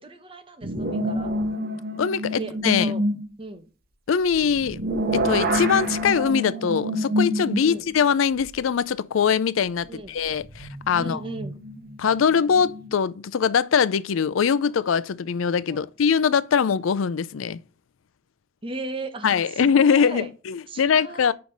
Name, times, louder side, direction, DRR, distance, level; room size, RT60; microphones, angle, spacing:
voice 1, 0.0-1.3 2.3-3.0 3.4-3.7 7.6-7.8 9.8-10.2 11.0-11.6 15.7-15.8 18.6-20.3 20.7-21.3, right 2 dB, 25° right, 1.0 m, -37 dB
sound 1, 0.6-3.3 4.3-7.9 8.5-8.6 10.3-12.9, equal, 50° right, 1.0 m, -27 dB
voice 2, 2.0-2.9 4.1-4.8 5.1-11.2 12.0-17.6 19.2-21.3, left 6 dB, 85° left, 0.4 m, -22 dB
5.2 x 4.8 x 5.2 m
head